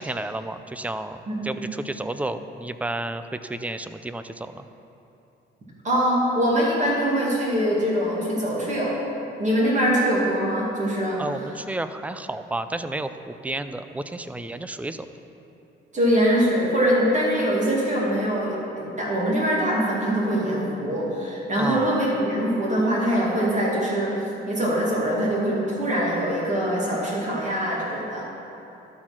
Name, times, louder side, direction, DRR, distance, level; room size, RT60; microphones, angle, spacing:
voice 1, 0.0-4.6 11.2-15.1 21.6-21.9, right 2 dB, 5° right, 10 dB, 0.4 m, -31 dB
voice 2, 1.3-1.7 5.8-9.0 9.4-11.2 15.9-24.2 24.5-28.3, equal, 40° right, -5 dB, 2.3 m, -23 dB
12.5 x 4.3 x 5.9 m, 2.9 s
cardioid pair, 90°, 20 cm